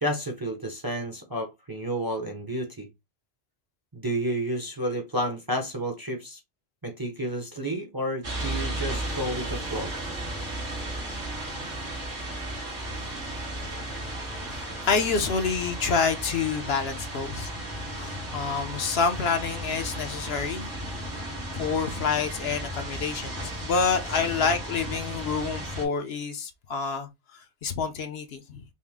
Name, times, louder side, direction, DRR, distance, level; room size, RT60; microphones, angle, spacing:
voice 1, 0.0-2.9 3.9-6.4 6.8-9.9, right 1 dB, 25° right, 0.7 m, -31 dB
sound 1, 8.2-25.9, right 1 dB, 85° right, 2.4 m, -34 dB
voice 2, 14.4-17.5 17.9-20.7 21.5-28.6, left 5 dB, 65° left, 0.9 m, -28 dB
5.4 x 2.1 x 3.5 m
omnidirectional pair, 1.2 m